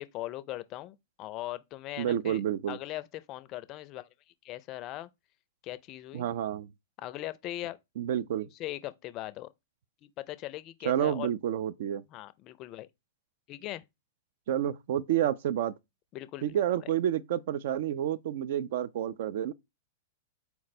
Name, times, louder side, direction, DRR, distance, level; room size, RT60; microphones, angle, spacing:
voice 1, 0.0-2.4 2.7-4.1 4.4-5.1 5.6-6.3 7.0-7.8 8.6-9.5 10.0-11.3 12.1-12.9 13.5-13.8 16.1-16.9, left 15 dB, 40° left, 0.4 m, -40 dB
voice 2, 2.0-2.8 6.1-6.7 8.0-8.5 10.8-12.0 14.5-15.7 16.4-19.5, right 10 dB, 60° right, 0.3 m, -29 dB
4.3 x 2.1 x 4.1 m
hypercardioid pair, 110°, 0 cm